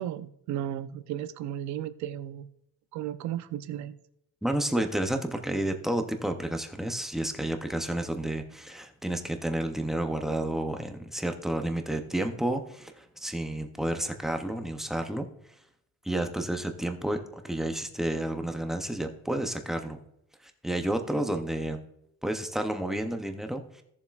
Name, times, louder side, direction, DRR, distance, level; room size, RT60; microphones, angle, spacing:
voice 1, 0.0-2.5 2.9-4.0, right 11 dB, 55° right, 12 dB, 0.6 m, -34 dB
voice 2, 4.4-15.3 16.0-20.0 20.4-21.8 22.2-23.8, right 1 dB, ahead, 5 dB, 0.5 m, -31 dB
16.5 x 7.2 x 2.3 m, 0.77 s
cardioid pair, 175°, 34 cm